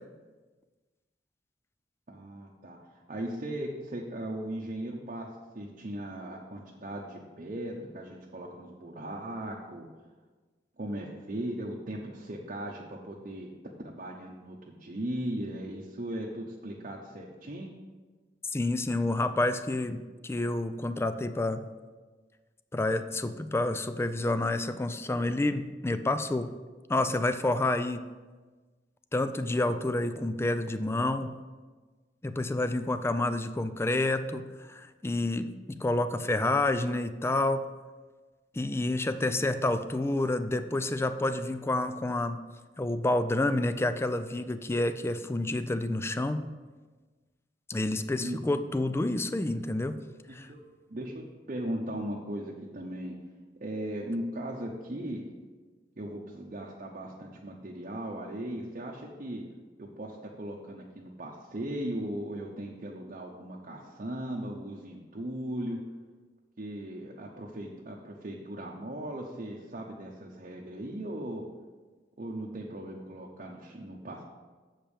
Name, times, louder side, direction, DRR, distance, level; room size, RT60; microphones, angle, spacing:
voice 1, 2.1-2.8 3.1-5.3 5.5-9.9 10.8-13.5 13.8-17.8 39.2-39.4 48.2-48.6 50.3-50.6 50.9-53.2 53.6-55.2 56.0-59.4 59.8-65.8 66.6-71.4 72.2-74.2, right 1 dB, 45° right, -2 dB, 0.8 m, -38 dB
voice 2, 18.5-21.7 22.7-26.5 26.9-28.0 29.1-31.4 32.2-37.7 38.5-42.4 42.8-46.4 47.7-50.0 50.3-50.5, left 2 dB, 15° left, 11 dB, 0.4 m, -29 dB
7.4 x 5.2 x 7.2 m, 1.3 s
head